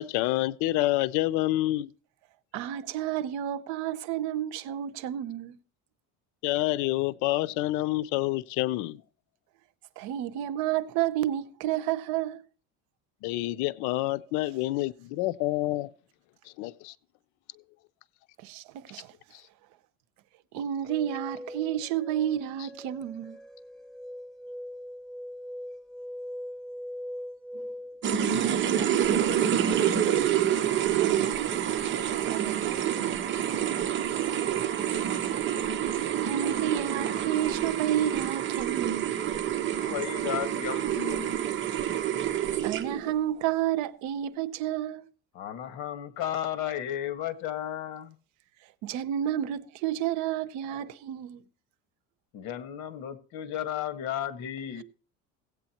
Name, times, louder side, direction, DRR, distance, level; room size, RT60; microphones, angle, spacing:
voice 1, 0.0-1.9 6.4-9.0 13.2-15.9 16.6-16.9, left 17 dB, 90° left, 0.6 m, -28 dB
voice 2, 2.5-5.6 10.0-12.4 18.4-19.1 20.5-23.4 28.9-29.3 30.7-31.5 32.0-33.2 36.2-39.1 42.6-45.0 48.8-51.4, right 11 dB, 75° right, 0.9 m, -31 dB
sound 1, 20.9-28.0, equal, ahead, 1.8 m, -41 dB
sound 2, 28.0-43.1, right 10 dB, 40° right, 1.0 m, -27 dB
voice 3, 39.7-41.3 45.3-48.2 52.3-54.8, left 11 dB, 70° left, 1.6 m, -34 dB
16.5 x 8.5 x 2.9 m
cardioid pair, 150°, 30 cm